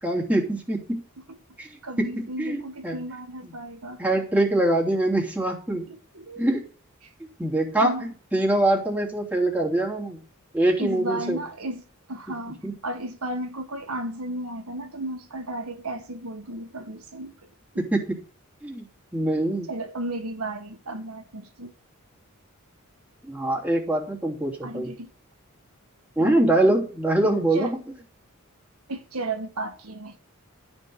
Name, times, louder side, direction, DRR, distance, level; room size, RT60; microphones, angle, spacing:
voice 1, 0.0-1.0 1.6-1.7 2.0-3.0 3.4-3.5 4.0-5.9 6.4-6.6 7.4-10.2 10.5-11.4 12.6-12.7 17.8-18.2 18.6-18.9 19.1-19.7 23.2-24.9 26.2-27.8, right 1 dB, 5° right, 3.0 m, -24 dB
voice 2, 1.8-4.0 5.9-6.5 7.0-7.1 7.7-8.1 10.8-11.8 12.1-17.5 19.7-21.7 24.6-25.1 26.2-26.6 27.2-27.7 28.9-30.2, right 1 dB, 80° right, 1.6 m, -34 dB
13.0 x 5.3 x 7.8 m
head